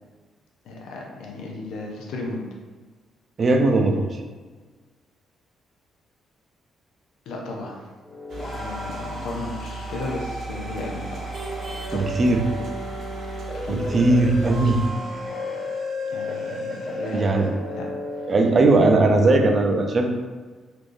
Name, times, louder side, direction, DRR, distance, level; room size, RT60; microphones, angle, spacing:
voice 1, 0.6-2.4 7.3-7.9 8.4-11.3 11.9-12.2 13.6-14.0 16.1-17.3 17.7-17.9 18.2-18.3, left 2 dB, 85° left, -1 dB, 0.6 m, -34 dB
voice 2, 3.4-4.2 11.9-12.4 13.7-14.8 17.1-17.5 18.3-20.1, right 2 dB, 40° right, 3 dB, 0.4 m, -19 dB
sound 1, 8.0-18.4, left 1 dB, 25° left, 1.2 m, -33 dB
sound 2, 8.3-14.9, right 3 dB, 70° right, 0.8 m, -37 dB
3.4 x 2.5 x 2.6 m, 1.4 s
cardioid pair, 90°, 0 cm